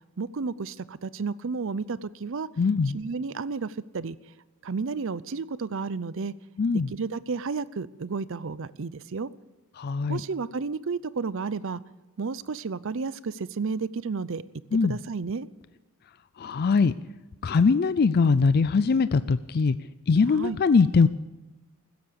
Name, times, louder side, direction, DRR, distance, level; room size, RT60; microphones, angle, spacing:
voice 1, 0.2-2.5 2.9-4.2 4.6-6.3 6.9-9.3 10.1-11.8 12.2-14.4 14.8-15.5 20.3-20.6, right 4 dB, 60° right, 18 dB, 0.6 m, -32 dB
voice 2, 2.6-3.0 6.6-6.9 9.8-10.2 14.7-15.0 16.4-16.9 17.4-19.8 20.1-21.1, left 4 dB, 45° left, 14 dB, 0.4 m, -21 dB
15.5 x 12.5 x 6.9 m, 1.1 s
head